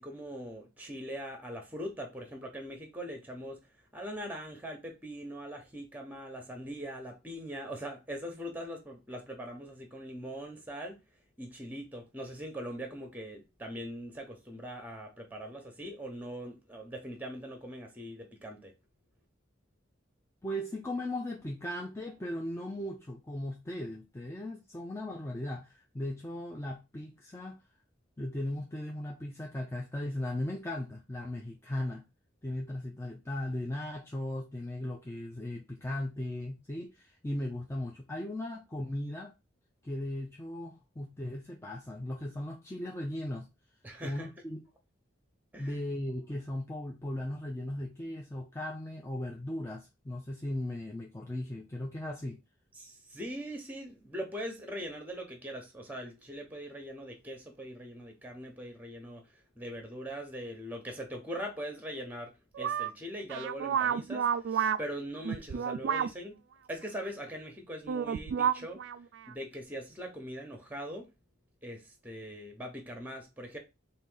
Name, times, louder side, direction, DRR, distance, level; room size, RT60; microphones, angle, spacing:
voice 1, 0.0-3.6 3.9-11.0 11.4-18.7 43.8-44.3 45.5-45.8 52.8-59.2 59.6-66.4 66.7-68.8 69.3-71.1 71.6-73.6, equal, 10° right, 1.0 m, -41 dB
voice 2, 20.4-27.6 28.2-32.1 32.4-39.4 39.8-43.5 44.0-44.6 45.6-52.4, left 1 dB, 15° left, 0.5 m, -37 dB
sound 1, 62.5-62.9 63.3-64.8 65.2-66.1 67.9-69.0 69.3-69.4, right 8 dB, 70° right, 0.3 m, -30 dB
4.1 x 2.6 x 3.9 m
head